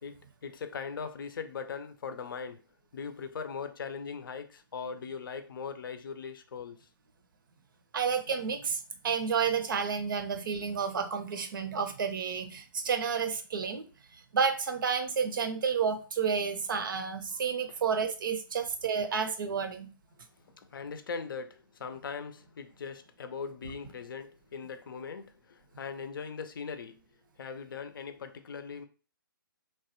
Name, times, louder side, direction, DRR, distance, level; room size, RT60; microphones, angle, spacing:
voice 1, 0.0-2.6 2.9-6.9 17.7-17.8 20.6-27.0 27.4-28.9, left 5 dB, 70° left, 0.5 m, -40 dB
voice 2, 7.9-8.8 9.0-13.9 14.3-19.9, right 6 dB, 65° right, 0.6 m, -30 dB
3.1 x 2.2 x 2.9 m
hypercardioid pair, 145°, 12 cm